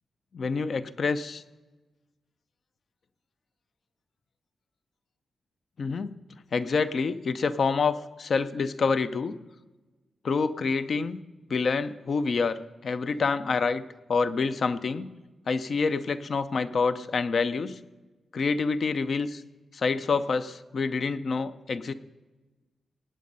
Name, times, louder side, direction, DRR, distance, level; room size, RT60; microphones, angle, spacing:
voice 1, 0.3-1.4 5.8-6.2 6.5-9.3 10.2-11.2 11.5-13.8 14.1-15.1 15.5-17.8 18.3-19.4 19.7-21.9, left 4 dB, 45° left, 14 dB, 0.6 m, -27 dB
18.5 x 8.5 x 5.4 m, 1.2 s
wide cardioid pair, 175°, 0 cm